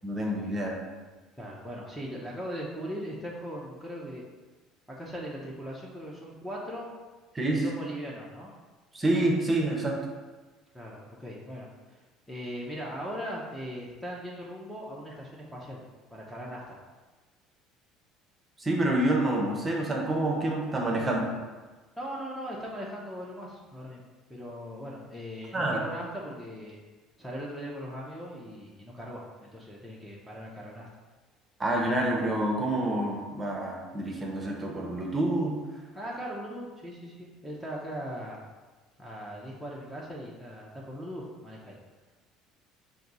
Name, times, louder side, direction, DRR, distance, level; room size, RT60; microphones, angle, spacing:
voice 1, 0.0-0.8 7.3-7.7 8.9-10.0 18.6-21.3 25.5-25.8 31.6-35.6, right 1 dB, 20° right, -1 dB, 0.8 m, -27 dB
voice 2, 1.4-4.2 4.9-6.9 7.5-8.5 10.7-15.8 16.1-16.8 21.0-21.2 22.0-24.0 24.3-26.8 27.2-30.9 35.9-38.4 39.0-41.8, equal, 5° left, -4 dB, 0.7 m, -39 dB
4.5 x 2.7 x 4.0 m, 1.3 s
cardioid pair, 115°, 0 cm